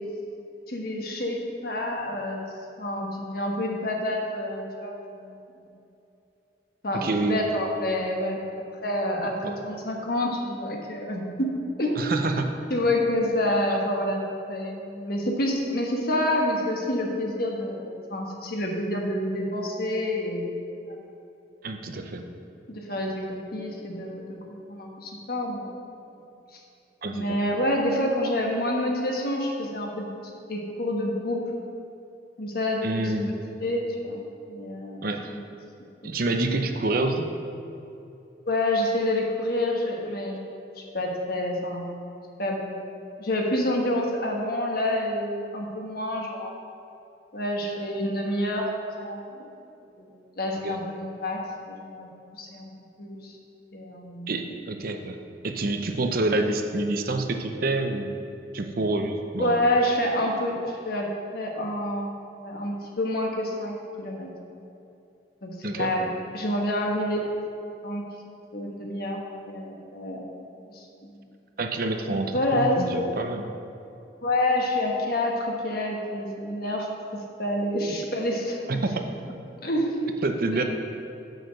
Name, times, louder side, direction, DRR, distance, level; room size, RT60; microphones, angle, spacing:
voice 1, 0.7-2.4 2.8-5.7 6.8-8.4 8.8-11.5 11.8-12.1 12.7-14.2 14.5-20.5 20.9-21.1 22.7-24.2 24.7-25.8 27.1-30.1 30.5-31.4 32.4-33.3 33.6-34.2 34.5-35.4 36.0-36.1 38.5-40.4 40.8-41.9 42.4-42.6 43.2-46.5 47.3-49.5 50.0-50.1 50.3-51.4 51.7-52.1 52.4-52.7 53.0-53.3 53.7-54.3 59.4-62.1 62.4-64.3 65.4-67.2 67.8-68.0 68.5-69.2 69.5-70.3 70.7-71.2 72.3-73.0 74.2-76.9 77.4-78.8 79.6-80.1 80.4-80.6, left 1 dB, 60° left, 0 dB, 1.3 m, -28 dB
voice 2, 6.9-7.4 9.4-9.6 12.0-12.5 21.6-22.2 27.0-27.4 32.8-33.3 35.0-35.3 36.0-37.3 50.6-50.8 54.3-55.2 55.4-58.1 58.5-59.6 65.6-65.9 71.6-73.5 78.7-79.0 80.2-80.6, right 2 dB, 55° right, 5 dB, 0.6 m, -27 dB
6.6 x 6.4 x 6.4 m, 2.7 s
head